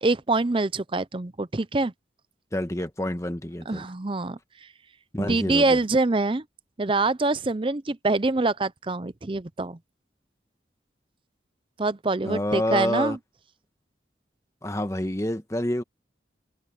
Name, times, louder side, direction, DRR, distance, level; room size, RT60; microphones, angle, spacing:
voice 1, 0.0-1.9 3.7-4.4 5.2-6.4 6.8-9.8 11.8-13.2, right 3 dB, 30° right, 0.6 m, -25 dB
voice 2, 2.5-3.9 5.1-5.8 12.2-13.2 14.6-15.8, left 1 dB, 15° left, 1.2 m, -28 dB
head